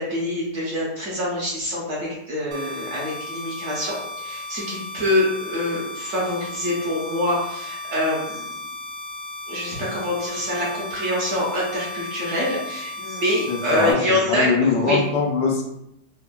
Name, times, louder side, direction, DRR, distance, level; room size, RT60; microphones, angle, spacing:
voice 1, 0.0-8.4 9.5-15.0, left 1 dB, 60° right, -5 dB, 0.9 m, -25 dB
sound 1, 2.5-13.9, left 2 dB, 85° right, 1.3 m, -35 dB
voice 2, 13.5-14.0 14.3-15.6, left 4 dB, 85° left, 0 dB, 1.3 m, -21 dB
3.3 x 2.1 x 2.2 m, 0.80 s
omnidirectional pair, 1.8 m